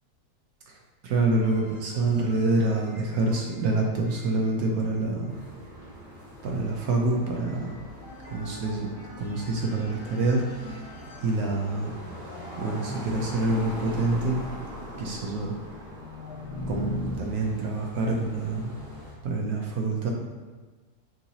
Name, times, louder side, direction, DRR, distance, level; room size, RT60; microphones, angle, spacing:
voice 1, 1.0-5.3 6.4-7.8 8.3-8.9 9.2-10.8 11.2-11.9 12.6-14.4 15.0-15.5 16.7-18.7 19.2-20.1, right 2 dB, 70° right, 0 dB, 1.0 m, -26 dB
sound 1, 1.4-17.2, left 1 dB, 65° left, 1.6 m, -43 dB
sound 2, 5.3-19.1, left 1 dB, 15° right, 0.9 m, -42 dB
5.6 x 2.7 x 2.7 m, 1.3 s
omnidirectional pair, 1.9 m